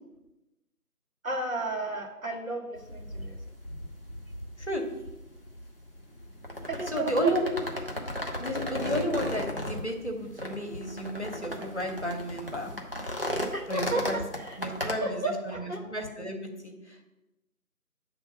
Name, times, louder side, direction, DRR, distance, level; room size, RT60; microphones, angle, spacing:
voice 1, 1.2-3.4 6.7-7.3 13.5-14.0 14.5-15.8, right 2 dB, 65° right, 0 dB, 1.6 m, -33 dB
sound 1, 2.7-15.0, left 1 dB, 40° right, 0.8 m, -36 dB
voice 2, 6.9-7.5 8.4-12.7 13.7-14.2 14.6-16.4 16.6-17.0, equal, 50° left, 3 dB, 1.0 m, -32 dB
7.3 x 3.6 x 6.1 m, 0.98 s
figure-of-eight pair, 175°, 45 cm